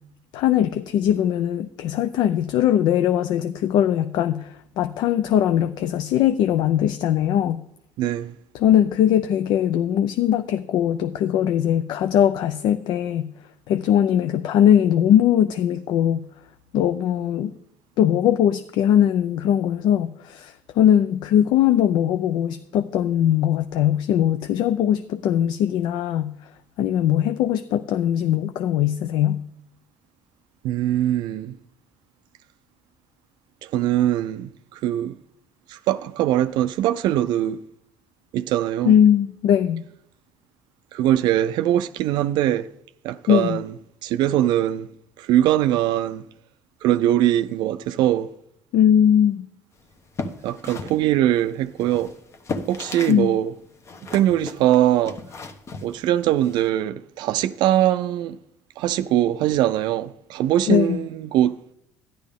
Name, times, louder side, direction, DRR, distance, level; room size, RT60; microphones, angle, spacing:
voice 1, 0.3-7.6 8.5-13.3 13.7-16.2 16.7-17.5 18.0-26.3 26.8-29.4 38.9-39.9 43.3-43.6 48.7-49.5 53.1-53.4 60.7-61.0, left 10 dB, 70° left, 0.4 m, -20 dB
voice 2, 8.0-8.4 30.6-31.6 33.6-35.2 35.7-37.6 38.3-38.9 40.9-42.7 43.0-43.7 44.0-44.9 45.2-46.2 46.8-48.3 50.4-52.1 52.7-53.5 54.1-55.2 55.8-58.4 58.8-61.6, right 12 dB, 70° right, 0.4 m, -22 dB
sound 1, 49.9-53.3 53.5-56.7, left 3 dB, 35° left, 1.0 m, -35 dB
12.0 x 10.5 x 3.6 m
cardioid pair, 105°, 8 cm